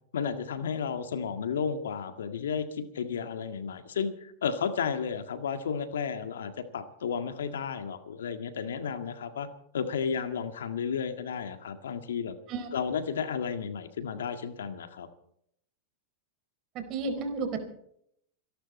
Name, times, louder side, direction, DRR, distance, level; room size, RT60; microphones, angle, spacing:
voice 1, 0.1-9.5 9.7-12.4 12.7-15.1, left 6 dB, 85° left, 8 dB, 1.8 m, -33 dB
voice 2, 16.7-17.7, right 4 dB, 45° right, 7 dB, 4.6 m, -32 dB
27.0 x 11.5 x 4.3 m, 0.70 s
hypercardioid pair, 110°, 0 cm